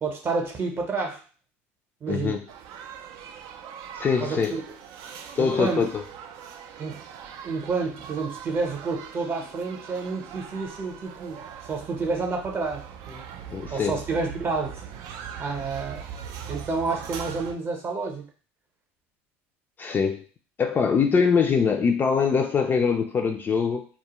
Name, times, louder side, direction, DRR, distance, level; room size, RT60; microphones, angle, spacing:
voice 1, 0.0-1.2 2.0-2.4 4.2-4.6 5.4-5.8 6.8-7.0 7.4-13.2 13.7-14.8 15.4-16.0 16.5-18.3, right 4 dB, 35° right, 2 dB, 0.7 m, -29 dB
voice 2, 2.1-2.4 3.9-4.6 5.4-6.0 13.5-14.0 19.8-20.2 20.6-23.8, left 5 dB, 30° left, 4 dB, 0.4 m, -23 dB
sound 1, 2.5-17.5, right 8 dB, 60° right, 0.4 m, -41 dB
2.3 x 2.1 x 2.9 m, 0.39 s
hypercardioid pair, 90°, 7 cm